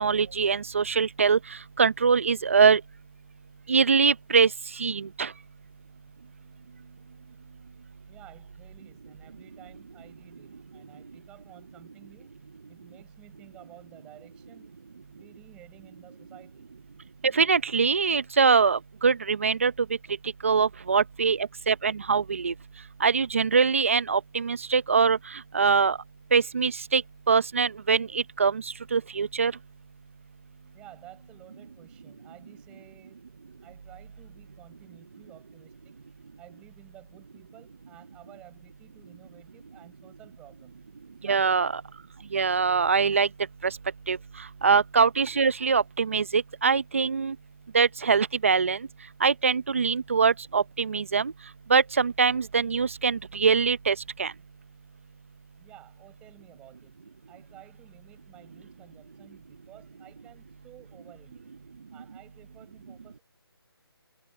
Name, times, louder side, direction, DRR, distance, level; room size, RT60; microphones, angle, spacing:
voice 1, 0.0-1.4 1.8-2.8 3.7-4.5 4.8-5.3 17.2-19.7 20.4-22.5 23.0-26.0 26.3-27.0 27.3-29.5 41.2-41.7 42.3-43.3 43.6-43.7 44.1-44.2 44.6-47.4 47.7-48.8 49.2-51.3 51.7-54.3, right 5 dB, 30° right, 0.7 m, -23 dB
voice 2, 8.1-12.4 12.7-14.7 15.1-16.7 30.7-33.3 33.6-36.0 36.4-40.8 41.2-41.8 55.6-57.0 57.3-61.5 61.9-63.2, right 14 dB, 5° right, 7.0 m, -53 dB
hypercardioid pair, 175°, 13 cm